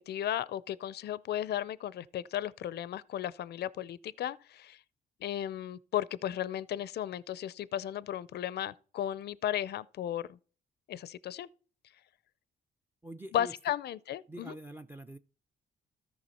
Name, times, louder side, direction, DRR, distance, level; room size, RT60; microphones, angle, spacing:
voice 1, 0.1-4.8 5.2-10.4 10.9-11.5 13.3-14.5, left 11 dB, 55° left, 0.5 m, -35 dB
voice 2, 13.0-13.5 14.3-15.2, right 2 dB, 10° right, 0.5 m, -45 dB
13.5 x 5.8 x 4.2 m
cardioid pair, 90°, 20 cm